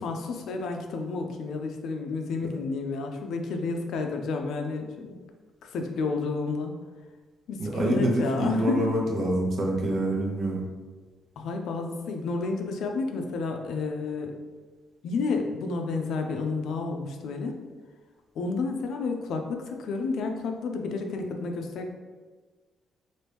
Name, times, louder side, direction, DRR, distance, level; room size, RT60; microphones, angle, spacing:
voice 1, 0.0-5.2 5.6-6.8 7.5-8.8 11.4-14.3 15.0-17.6 18.4-21.9, left 4 dB, 75° left, 4 dB, 0.4 m, -31 dB
voice 2, 7.6-10.6, right 1 dB, 60° right, -2 dB, 0.8 m, -26 dB
2.9 x 2.6 x 3.4 m, 1.4 s
cardioid pair, 90°, 0 cm